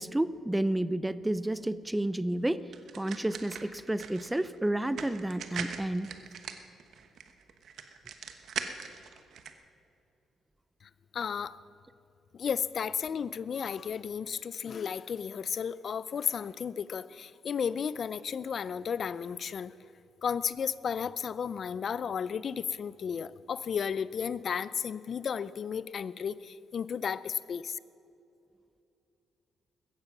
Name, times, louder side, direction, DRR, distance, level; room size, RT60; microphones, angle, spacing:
voice 1, 0.0-6.1, right 1 dB, 10° right, 16 dB, 0.5 m, -31 dB
sound 1, 2.7-9.5, right 7 dB, 65° right, 1.1 m, -41 dB
voice 2, 11.1-11.6 12.3-19.7 20.2-27.8, left 7 dB, 50° left, 17 dB, 0.4 m, -33 dB
16.5 x 14.0 x 6.0 m, 2.7 s
cardioid pair, 90°, 0 cm